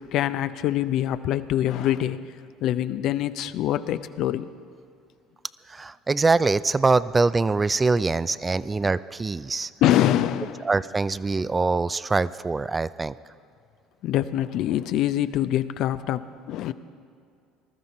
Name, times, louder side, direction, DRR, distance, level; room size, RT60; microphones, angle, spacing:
voice 1, 0.0-2.2 2.6-4.5 8.6-8.7 9.8-10.7 14.0-16.7, left 12 dB, 60° left, 13 dB, 0.5 m, -24 dB
voice 2, 5.7-9.7 10.7-13.1, right 3 dB, 20° right, 16 dB, 0.4 m, -23 dB
19.5 x 13.0 x 4.3 m, 2.4 s
hypercardioid pair, 65°, 0 cm